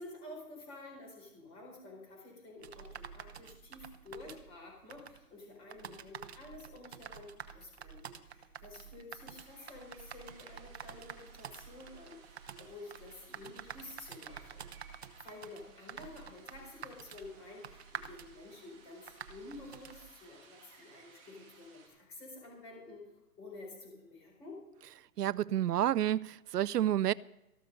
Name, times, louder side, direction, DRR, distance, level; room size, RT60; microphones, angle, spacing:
voice 1, 0.0-23.1 23.4-24.6, left 2 dB, 10° left, 4.4 m, -50 dB
sound 1, 2.6-20.1, right 7 dB, 45° right, 1.0 m, -49 dB
sound 2, 9.3-21.9, right 4 dB, 15° right, 2.4 m, -61 dB
voice 2, 25.2-27.1, right 12 dB, 85° right, 0.6 m, -29 dB
14.0 x 12.5 x 5.3 m
hypercardioid pair, 175°, 46 cm